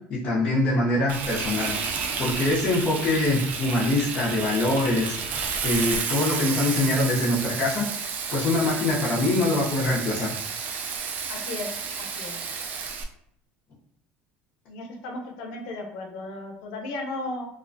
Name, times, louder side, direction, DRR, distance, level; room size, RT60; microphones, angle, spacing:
voice 1, 0.1-1.7 2.2-5.1 5.6-7.9 8.3-10.4, left 2 dB, 40° left, -8 dB, 0.6 m, -24 dB
Frying (food), 1.1-13.0, right 5 dB, 45° right, 0.3 m, -31 dB
voice 2, 11.3-11.7 12.0-12.3 14.7-17.5, left 2 dB, 85° left, 2 dB, 0.5 m, -35 dB
2.3 x 2.1 x 2.5 m, 0.72 s
cardioid pair, 145°, 4 cm